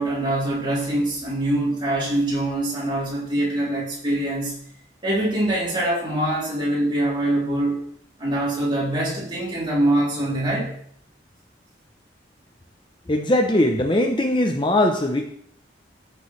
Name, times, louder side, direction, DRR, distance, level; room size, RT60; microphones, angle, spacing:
voice 1, 0.0-4.6 5.0-7.8 8.2-10.8, right 1 dB, 25° right, -6 dB, 3.5 m, -24 dB
voice 2, 13.1-15.2, left 1 dB, 25° left, 4 dB, 0.7 m, -20 dB
15.5 x 7.0 x 3.3 m, 0.66 s
head